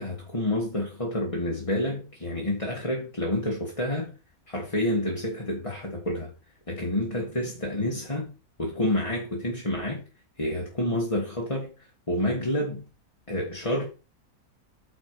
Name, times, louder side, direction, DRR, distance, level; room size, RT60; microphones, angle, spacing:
voice 1, 0.0-4.1 4.5-6.3 6.7-8.3 8.6-10.0 10.4-11.7 12.1-12.8 13.3-13.9, left 1 dB, 20° left, 2.0 m, -28 dB
9.0 x 6.4 x 4.8 m
omnidirectional pair, 1.5 m